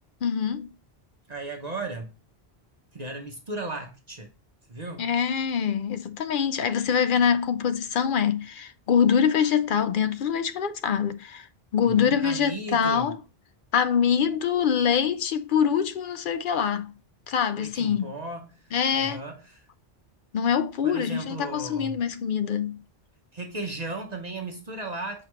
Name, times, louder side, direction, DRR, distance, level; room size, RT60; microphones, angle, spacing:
voice 1, 0.2-0.7 5.0-11.5 11.7-13.2 13.7-16.9 17.3-18.1 18.7-19.2 20.3-22.8, left 7 dB, 60° left, 0.7 m, -24 dB
voice 2, 1.3-2.1 2.9-4.3 4.7-5.1 11.8-13.1 17.6-19.7 20.8-22.0 23.3-25.3, right 2 dB, 40° right, 1.0 m, -36 dB
6.6 x 4.8 x 3.0 m
omnidirectional pair, 1.1 m